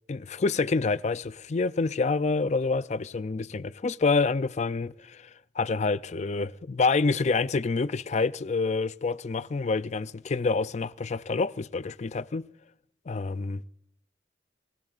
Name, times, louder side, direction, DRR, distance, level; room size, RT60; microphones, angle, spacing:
voice 1, 0.1-5.3 5.6-12.4 13.1-13.7, left 4 dB, 40° left, 0.4 m, -27 dB
25.0 x 15.5 x 2.5 m
head